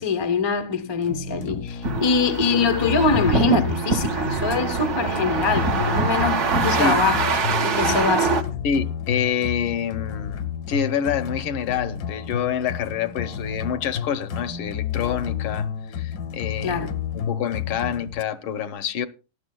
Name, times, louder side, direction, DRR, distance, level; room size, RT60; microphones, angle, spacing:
voice 1, 0.0-8.4 16.6-16.9, left 4 dB, 45° left, 0.3 m, -24 dB
sound 1, 1.0-18.2, left 8 dB, 65° left, 1.1 m, -31 dB
sound 2, 1.8-8.4, right 3 dB, 50° right, 0.9 m, -24 dB
Bass guitar, 3.0-7.8 8.1-9.3, right 8 dB, 70° right, 1.8 m, -38 dB
voice 2, 6.7-7.0 8.6-16.8 17.1-19.1, left 8 dB, 80° left, 1.6 m, -27 dB
18.0 x 12.0 x 2.3 m
omnidirectional pair, 2.3 m